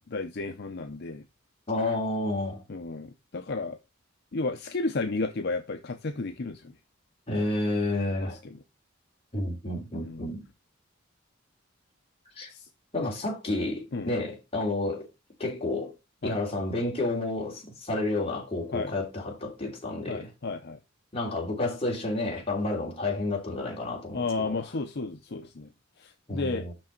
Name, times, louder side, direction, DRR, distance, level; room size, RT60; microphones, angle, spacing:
voice 1, 0.1-1.2 2.7-3.8 4.3-6.7 8.2-8.6 9.9-10.3 12.5-12.7 13.0-13.1 13.9-14.1 16.2-16.4 18.7-18.9 20.1-20.8 24.1-25.7 26.0-26.7, left 3 dB, 55° left, 0.6 m, -33 dB
voice 2, 1.7-2.6 7.3-8.4 9.3-10.4 12.4-12.5 12.9-15.1 15.4-15.9 16.2-20.3 21.1-24.6 26.3-26.7, left 2 dB, 30° left, 2.8 m, -30 dB
6.2 x 6.1 x 4.4 m
head